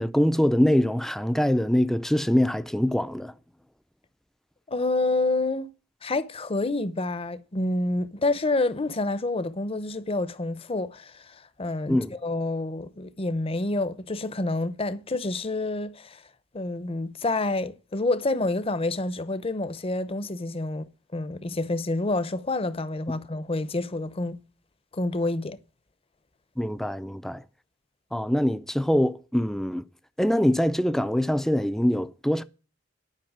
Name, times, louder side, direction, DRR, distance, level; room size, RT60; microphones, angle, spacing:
voice 1, 0.0-3.3 11.9-12.1 26.6-27.4 28.1-29.8 30.2-32.4, equal, ahead, 0.4 m, -23 dB
voice 2, 4.7-5.7 6.0-16.2 16.5-20.9 21.1-24.4 24.9-25.6, left 2 dB, 30° left, 0.7 m, -28 dB
11.0 x 5.5 x 8.7 m
head